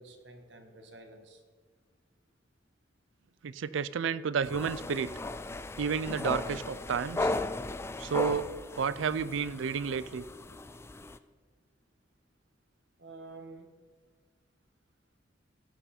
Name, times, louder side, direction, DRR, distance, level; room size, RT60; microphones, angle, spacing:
voice 1, 0.0-1.4 13.0-13.7, right 3 dB, 70° right, 5 dB, 1.5 m, -49 dB
voice 2, 3.4-5.1 5.8-7.3 8.0-8.5 8.8-10.2, right 6 dB, 90° right, 17 dB, 0.4 m, -31 dB
sound 1, 4.4-11.2, left 2 dB, 15° left, 0.3 m, -36 dB
17.0 x 6.8 x 4.4 m, 1.5 s
head